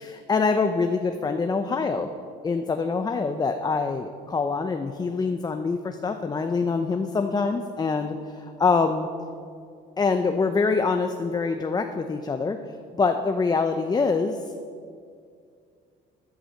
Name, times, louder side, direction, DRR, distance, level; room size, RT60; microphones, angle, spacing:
voice 1, 0.0-2.1 2.4-9.1 10.0-12.6 12.9-14.5, left 4 dB, 25° left, 6 dB, 0.7 m, -25 dB
12.5 x 11.0 x 6.5 m, 2.2 s
cardioid pair, 110°, 17 cm